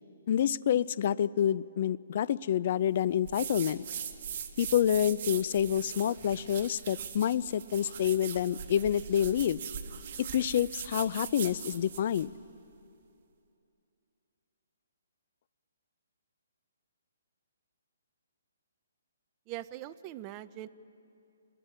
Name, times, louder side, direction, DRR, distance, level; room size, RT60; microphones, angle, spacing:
voice 1, 0.3-3.8 4.6-9.6 10.2-12.3, left 10 dB, 40° left, 20 dB, 0.4 m, -28 dB
sound 1, 3.2-12.3, right 8 dB, 40° right, 1.3 m, -41 dB
voice 2, 19.5-20.7, right 14 dB, 20° right, 13 dB, 0.4 m, -41 dB
29.5 x 20.5 x 4.4 m, 2.7 s
hypercardioid pair, 170°, 0 cm